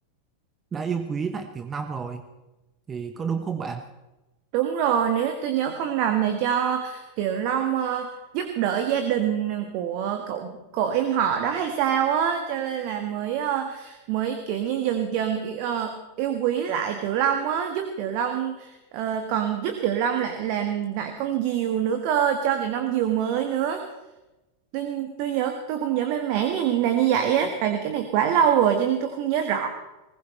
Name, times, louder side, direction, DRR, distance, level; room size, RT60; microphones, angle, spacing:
voice 1, 0.7-2.2 2.9-3.9, right 6 dB, 20° right, 9 dB, 1.1 m, -30 dB
voice 2, 4.5-23.8 24.7-29.7, right 9 dB, 45° right, 6 dB, 1.7 m, -25 dB
20.5 x 19.5 x 3.3 m, 1.0 s
figure-of-eight pair, 90°, 0 cm